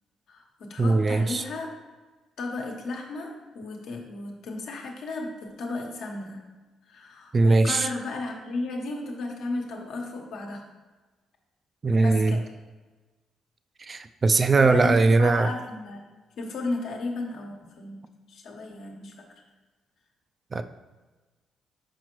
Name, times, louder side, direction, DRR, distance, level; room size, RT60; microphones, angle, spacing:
voice 1, 0.3-1.7 2.4-6.4 6.9-10.6 12.0-12.4 14.6-16.0 16.4-19.3, left 2 dB, 75° left, 1 dB, 1.1 m, -34 dB
voice 2, 0.8-1.4 7.3-7.9 11.8-12.4 13.8-15.5 20.5-20.6, right 3 dB, 35° right, 10 dB, 0.4 m, -20 dB
6.0 x 5.1 x 3.1 m, 1.2 s
cardioid pair, 90°, 0 cm